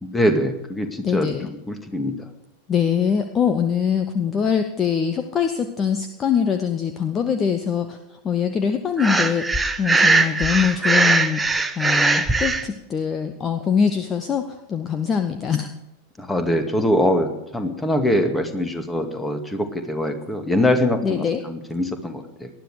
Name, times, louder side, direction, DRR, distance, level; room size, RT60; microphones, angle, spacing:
voice 1, 0.0-2.2 16.2-22.5, left 1 dB, 10° left, 6 dB, 2.1 m, -23 dB
voice 2, 1.0-1.5 2.7-8.0 8.2-15.7 21.0-21.4, left 7 dB, 25° left, 8 dB, 1.0 m, -23 dB
Breathing, 9.0-12.6, right 3 dB, 10° right, 1.1 m, -20 dB
19.5 x 12.5 x 4.9 m, 0.89 s
figure-of-eight pair, 90°, 0 cm